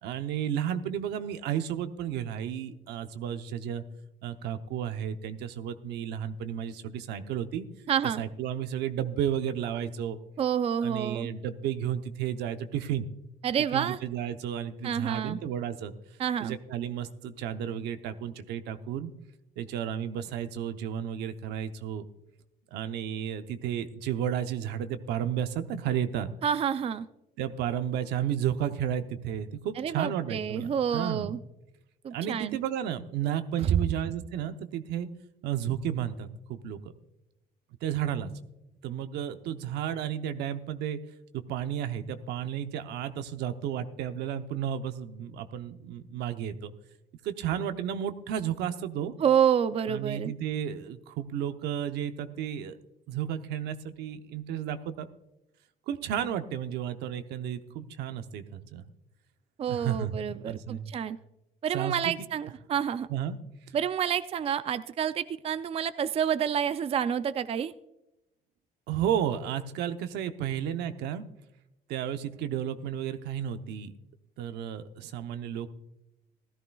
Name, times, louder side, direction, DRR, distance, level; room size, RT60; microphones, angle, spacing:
voice 1, 0.0-3.8 4.2-7.7 8.2-10.2 10.8-13.0 13.7-15.9 16.4-19.1 19.6-22.0 22.7-26.3 27.4-31.4 32.1-35.1 35.4-36.8 37.8-38.3 38.8-41.0 41.3-46.7 47.2-49.1 49.9-52.8 53.1-55.1 55.9-58.8 59.7-60.2 60.5-60.9 61.7-62.3 63.1-63.4 68.9-71.3 71.9-73.9 74.4-75.7, right 9 dB, 85° right, 9 dB, 0.8 m, -32 dB
voice 2, 7.9-8.2 10.4-11.3 13.4-14.0 14.8-15.4 16.2-16.6 26.4-27.1 29.8-31.4 32.0-32.6 33.6-33.8 49.2-50.3 59.6-61.2 61.6-63.1 63.7-67.7, right 8 dB, 35° right, 13 dB, 0.4 m, -28 dB
16.0 x 13.5 x 2.3 m, 0.90 s
cardioid pair, 110°, 17 cm